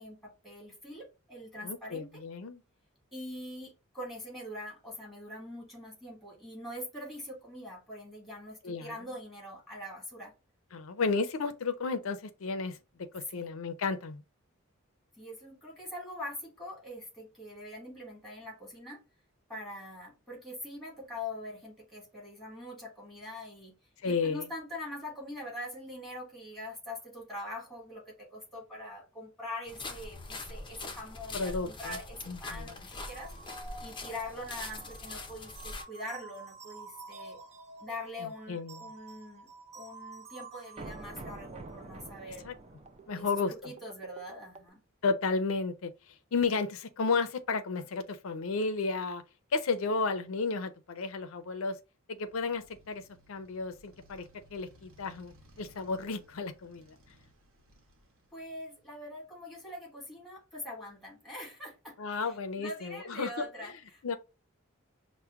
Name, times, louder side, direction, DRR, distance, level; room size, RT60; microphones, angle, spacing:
voice 1, 0.0-2.2 3.1-10.3 13.3-13.5 15.2-19.0 19.5-23.8 24.0-32.8 33.0-33.5 33.8-37.4 37.8-42.5 43.1-44.8 58.3-64.2, left 1 dB, ahead, 1.5 m, -43 dB
voice 2, 1.6-2.6 8.6-8.9 10.7-12.8 13.1-14.2 24.0-24.4 31.3-32.0 32.3-32.9 38.5-38.9 42.4-42.5 43.1-43.7 45.0-49.2 49.5-51.8 52.1-53.0 53.3-57.0 62.0-63.4 64.0-64.2, left 4 dB, 75° left, 0.5 m, -33 dB
sound 1, 29.7-35.8, left 3 dB, 25° left, 0.5 m, -43 dB
sound 2, 32.9-44.7, right 3 dB, 30° right, 0.4 m, -48 dB
Motorcycle, 52.2-58.9, equal, 75° right, 1.0 m, -61 dB
5.6 x 2.1 x 2.4 m
head